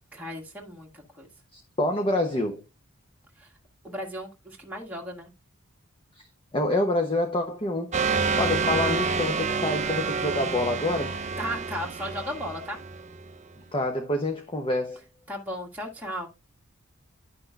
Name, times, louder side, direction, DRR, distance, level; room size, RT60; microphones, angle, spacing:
voice 1, 0.1-1.3 3.4-3.5 3.8-5.3 11.4-12.8 15.3-16.3, equal, 5° right, 1.6 m, -35 dB
voice 2, 1.5-2.6 6.2-6.3 6.5-8.1 8.4-11.2 13.7-15.0, left 1 dB, 25° left, 0.7 m, -27 dB
sound 1, 7.9-13.3, right 5 dB, 30° right, 0.5 m, -28 dB
11.0 x 6.0 x 2.3 m
head